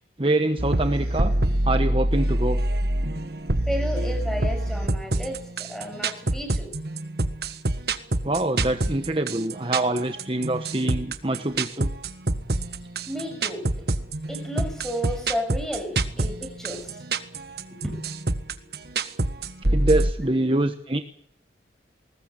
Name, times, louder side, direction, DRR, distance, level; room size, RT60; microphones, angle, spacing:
voice 1, 0.2-1.3 1.6-2.6 8.2-11.9 19.7-21.0, right 2 dB, 30° right, 8 dB, 1.2 m, -25 dB
sound 1, 0.6-20.1, right 1 dB, 60° right, 1.5 m, -26 dB
voice 2, 3.7-6.7 13.1-13.9 14.3-17.0 17.7-18.0, equal, ahead, 5 dB, 6.4 m, -33 dB
21.0 x 19.5 x 8.3 m, 0.65 s
head